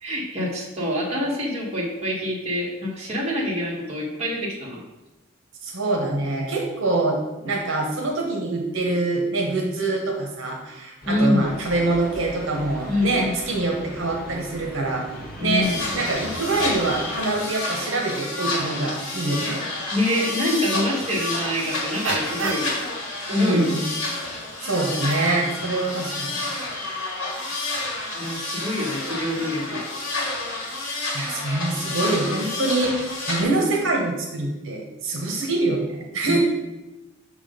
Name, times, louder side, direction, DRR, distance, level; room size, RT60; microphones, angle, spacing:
voice 1, 0.0-4.8 11.1-11.5 12.9-13.3 15.4-15.8 19.9-22.7 23.3-23.8 28.1-29.8 36.2-36.4, left 1 dB, 30° right, -4 dB, 1.4 m, -25 dB
voice 2, 5.6-15.1 15.4-15.7 15.9-19.7 23.4-23.8 24.6-26.5 31.1-33.0 33.3-36.4, right 2 dB, 65° right, 0 dB, 1.1 m, -25 dB
sound 1, 11.0-17.1, equal, 45° left, 1.3 m, -39 dB
sound 2, 15.6-33.4, left 2 dB, 70° left, 2.0 m, -30 dB
sound 3, 21.0-21.6 22.0-22.9 23.3-23.7 24.0-24.1 24.5-25.9 26.2-26.5, right 6 dB, 80° right, 0.5 m, -35 dB
6.4 x 3.7 x 5.1 m, 1.0 s
head